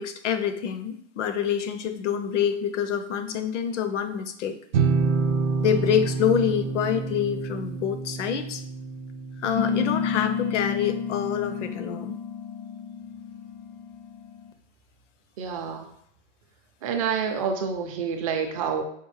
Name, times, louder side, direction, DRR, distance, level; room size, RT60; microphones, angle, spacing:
voice 1, 0.0-4.6 5.6-8.6 9.4-12.2, left 8 dB, 75° left, 9 dB, 0.6 m, -26 dB
sound 1, 4.7-10.3, right 4 dB, 75° right, 0.6 m, -27 dB
sound 2, 9.5-14.5, left 7 dB, 40° left, 0.4 m, -30 dB
voice 2, 15.4-15.9 16.8-18.8, right 6 dB, 30° right, 5 dB, 0.4 m, -28 dB
5.1 x 2.4 x 3.2 m, 0.68 s
supercardioid pair, 155°, 37 cm